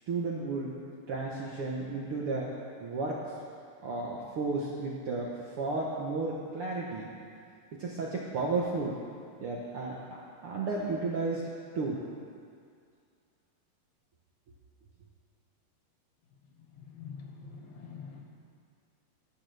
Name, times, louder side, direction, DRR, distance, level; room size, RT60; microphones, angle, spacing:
voice 1, 0.1-0.7 1.1-2.5 2.8-3.3 3.8-7.1 7.8-9.0 9.4-11.4 11.7-12.0, right 3 dB, 65° right, -4 dB, 1.4 m, -33 dB
voice 2, 16.7-18.2, left 6 dB, 85° left, -1 dB, 3.4 m, -45 dB
19.0 x 11.0 x 3.4 m, 2.2 s
omnidirectional pair, 4.0 m